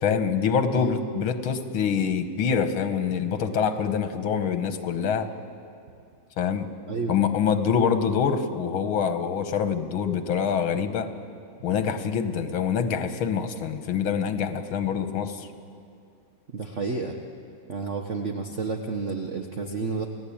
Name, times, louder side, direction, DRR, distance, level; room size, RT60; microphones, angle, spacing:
voice 1, 0.0-5.3 6.4-6.7 7.1-11.1 11.6-15.5, left 7 dB, 80° left, 8 dB, 2.1 m, -25 dB
voice 2, 16.5-17.1 17.7-20.0, right 4 dB, 40° right, 3 dB, 1.3 m, -30 dB
29.0 x 17.5 x 8.7 m, 2.5 s
omnidirectional pair, 2.2 m